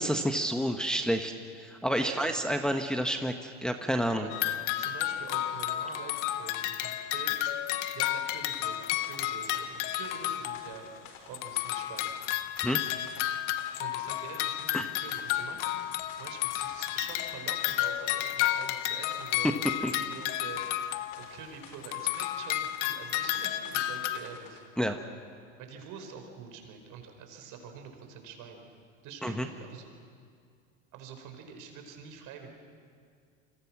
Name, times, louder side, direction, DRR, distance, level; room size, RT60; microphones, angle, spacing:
voice 1, 0.0-1.3 1.6-4.3 12.6-12.8 14.7-14.9 19.8-19.9 24.8-25.0 29.2-29.5, equal, ahead, 5 dB, 1.4 m, -29 dB
voice 2, 2.0-2.4 4.1-4.3 4.8-7.3 7.9-10.9 11.3-12.1 13.8-15.8 16.2-24.6 25.6-28.6 29.0-29.9 30.9-32.5, right 6 dB, 55° right, 4 dB, 5.2 m, -46 dB
sound 1, 4.3-11.1 11.3-21.5 21.8-24.2, left 13 dB, 65° left, 1.3 m, -32 dB
sound 2, 8.5-24.6, left 6 dB, 80° left, 3.7 m, -52 dB
28.0 x 26.0 x 6.2 m, 2.2 s
hypercardioid pair, 85°, 37 cm